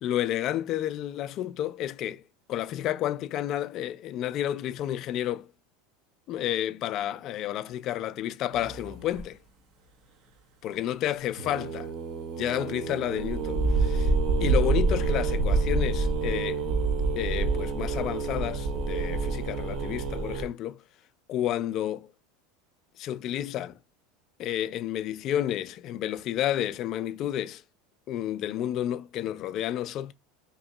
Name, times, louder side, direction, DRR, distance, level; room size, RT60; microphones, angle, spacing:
voice 1, 0.0-2.2 2.5-5.5 6.3-9.4 10.6-11.9 12.4-14.1 14.4-16.6 17.2-20.8 21.3-22.1 23.0-23.7 24.4-27.6 28.1-30.1, left 12 dB, 50° left, 0.5 m, -30 dB
sound 1, 8.5-9.2 11.4-20.5, right 3 dB, 55° right, 1.0 m, -27 dB
3.0 x 2.8 x 3.9 m
hypercardioid pair, 100°, 0 cm